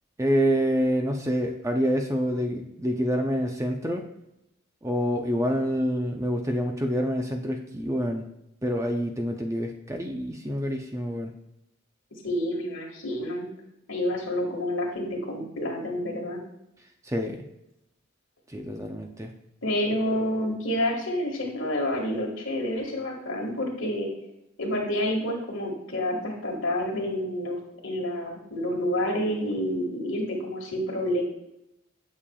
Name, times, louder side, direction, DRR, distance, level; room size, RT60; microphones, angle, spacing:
voice 1, 0.2-4.0 4.8-8.3 8.6-11.3 17.0-17.5 18.5-19.3, equal, 15° right, 3 dB, 0.5 m, -27 dB
voice 2, 12.2-13.5 13.9-16.4 19.6-24.1 24.6-31.2, left 1 dB, 60° left, 0 dB, 1.7 m, -29 dB
8.6 x 6.6 x 2.3 m, 0.85 s
head